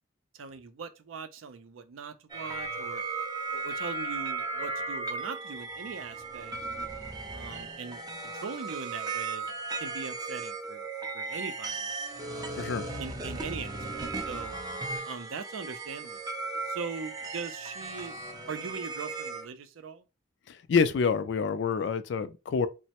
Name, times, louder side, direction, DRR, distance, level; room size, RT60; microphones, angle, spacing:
voice 1, 0.3-3.0 3.5-6.5 7.3-9.5 9.8-10.9 11.1-11.9 12.3-12.7 13.0-14.6 15.1-16.2 16.7-18.1 18.5-20.0, right 5 dB, 85° right, 0.4 m, -41 dB
sound 1, 2.3-19.5, right 3 dB, 20° right, 0.4 m, -36 dB
voice 2, 20.5-22.7, left 5 dB, 60° left, 0.3 m, -27 dB
3.1 x 2.0 x 2.8 m
head